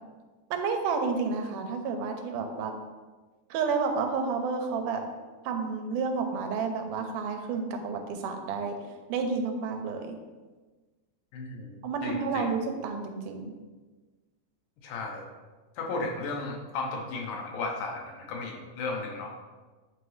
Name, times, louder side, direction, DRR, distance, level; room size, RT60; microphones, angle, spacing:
voice 1, 0.5-2.7 3.5-5.0 5.4-8.8 9.1-10.2 11.8-13.5, right 5 dB, 85° right, 5 dB, 2.2 m, -30 dB
voice 2, 11.3-12.5 14.8-15.2 15.8-19.3, left 3 dB, 80° left, 0 dB, 2.5 m, -35 dB
8.2 x 4.0 x 3.1 m, 1.3 s
omnidirectional pair, 3.6 m